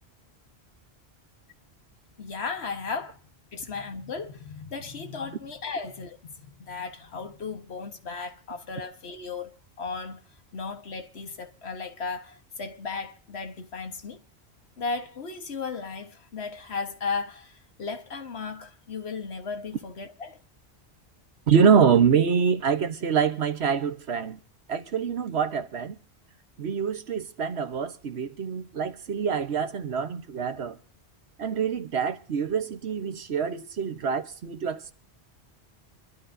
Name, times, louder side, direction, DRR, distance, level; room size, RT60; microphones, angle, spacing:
voice 1, 2.2-3.2 3.5-10.2 10.5-14.2 14.8-20.4, left 4 dB, 75° left, 1.6 m, -35 dB
voice 2, 21.5-24.4 24.7-26.0 26.6-30.8 31.4-34.9, right 7 dB, 80° right, 1.3 m, -25 dB
25.5 x 12.5 x 2.7 m
omnidirectional pair, 1.1 m